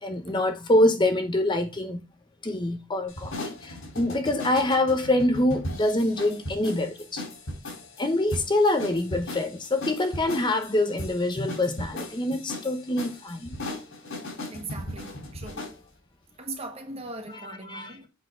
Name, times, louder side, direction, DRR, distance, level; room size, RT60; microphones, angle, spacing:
voice 1, 0.0-2.0 2.4-7.2 8.0-13.6 17.3-18.0, left 1 dB, 20° left, 0.7 m, -25 dB
sound 1, 3.1-15.8, left 1 dB, 85° left, 4.0 m, -37 dB
voice 2, 14.5-15.7 16.4-18.1, right 2 dB, 30° right, 1.5 m, -39 dB
7.9 x 3.9 x 5.3 m
head